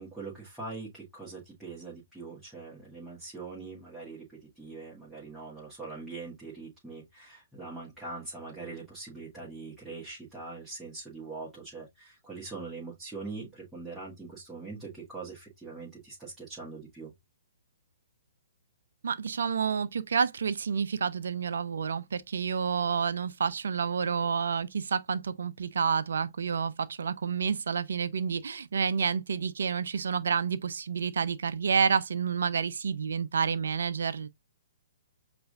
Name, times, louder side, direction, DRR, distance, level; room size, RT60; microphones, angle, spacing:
voice 1, 0.0-17.1, right 3 dB, 5° right, 1.6 m, -42 dB
voice 2, 19.0-34.3, right 6 dB, 60° right, 0.5 m, -29 dB
7.7 x 2.6 x 2.4 m
figure-of-eight pair, 120°, 0 cm